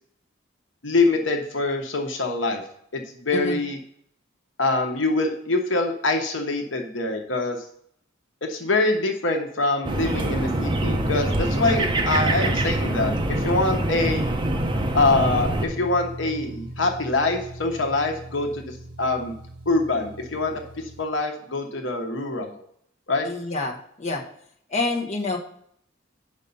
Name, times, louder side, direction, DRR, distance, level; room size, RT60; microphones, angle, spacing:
voice 1, 0.8-2.6 2.9-3.8 4.6-7.6 8.4-14.2 14.9-19.3 19.7-20.6 21.0-22.6 23.1-23.3, left 2 dB, 80° left, 3 dB, 1.2 m, -24 dB
sound 1, 9.8-15.7, right 1 dB, 25° right, 0.8 m, -24 dB
sound 2, 14.0-21.0, right 1 dB, 55° right, 2.2 m, -38 dB
voice 2, 23.2-24.2 24.7-25.4, left 3 dB, 35° left, -1 dB, 1.2 m, -27 dB
8.2 x 5.3 x 5.5 m, 0.68 s
head